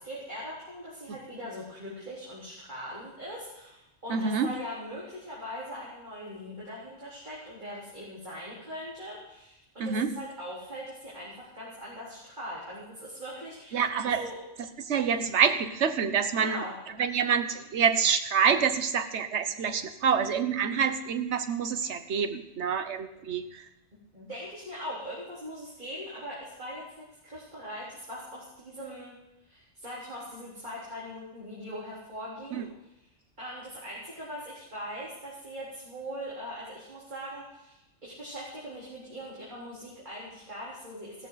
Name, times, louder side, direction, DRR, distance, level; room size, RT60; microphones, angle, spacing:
voice 1, 0.0-13.8 14.2-14.4 15.0-15.2 16.4-16.7 24.1-29.2 29.5-32.6 33.4-41.3, equal, 40° right, -8 dB, 4.3 m, -41 dB
voice 2, 4.1-4.6 9.8-10.2 13.7-14.2 14.8-16.6 17.0-23.7 32.5-32.6, right 7 dB, 70° right, 9 dB, 1.3 m, -27 dB
16.5 x 13.5 x 4.1 m, 0.93 s
omnidirectional pair, 1.2 m